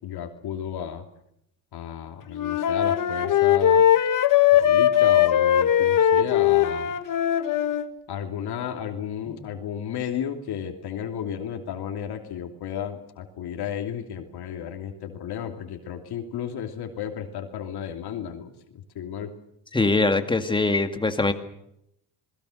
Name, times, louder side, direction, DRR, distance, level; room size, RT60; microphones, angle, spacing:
voice 1, 0.0-1.0 1.7-3.9 4.5-7.0 8.1-19.3, left 9 dB, 65° left, 3 dB, 3.0 m, -33 dB
Wind instrument woodwind instrument, 2.3-7.9, left 10 dB, 50° left, 1.7 m, -20 dB
voice 2, 19.7-21.3, left 3 dB, 10° left, 7 dB, 2.1 m, -22 dB
28.0 x 20.5 x 6.6 m, 0.78 s
cardioid pair, 115°, 41 cm